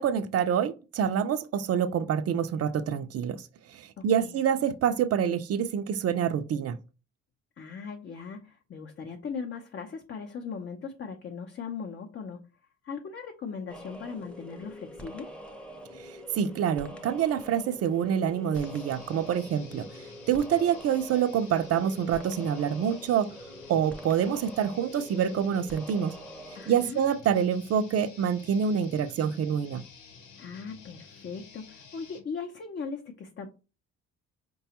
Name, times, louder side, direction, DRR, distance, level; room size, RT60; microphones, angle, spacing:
voice 1, 0.0-3.4 3.7-6.8 15.9-23.3 23.7-26.2 26.7-29.8, right 8 dB, 55° right, 0.5 m, -27 dB
voice 2, 4.0-4.3 7.6-12.5 12.8-15.3 26.5-27.0 30.4-33.5, left 5 dB, 40° left, 0.6 m, -39 dB
sound 1, 13.7-26.9, equal, 5° left, 0.7 m, -45 dB
sound 2, 18.5-32.3, left 5 dB, 85° left, 0.9 m, -51 dB
4.8 x 2.3 x 2.8 m
cardioid pair, 90°, 30 cm